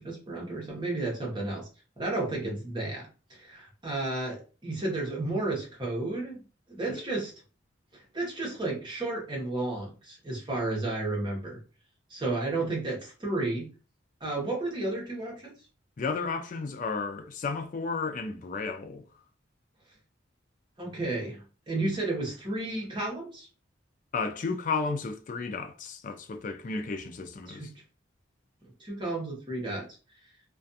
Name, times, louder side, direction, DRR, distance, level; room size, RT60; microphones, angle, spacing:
voice 1, 0.0-1.7 2.0-6.4 6.7-7.3 7.9-11.6 12.1-13.7 14.2-15.5 20.8-23.5 27.5-27.7 28.8-29.9, right 2 dB, 25° right, 0.9 m, -32 dB
voice 2, 16.0-19.0 24.1-27.7, left 4 dB, 45° left, 0.4 m, -33 dB
2.4 x 2.2 x 2.6 m
head